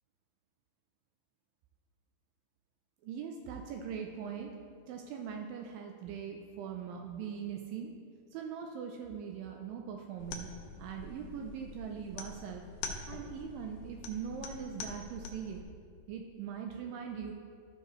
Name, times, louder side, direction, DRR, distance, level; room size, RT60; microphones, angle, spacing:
voice 1, 3.0-4.5 4.9-7.9 8.3-10.5 10.8-12.6 13.1-15.6 16.1-17.3, right 7 dB, 85° right, 3 dB, 2.0 m, -41 dB
sound 1, 10.2-15.6, left 4 dB, 85° left, 1.8 m, -45 dB
13.5 x 5.3 x 3.0 m, 2.2 s
omnidirectional pair, 4.6 m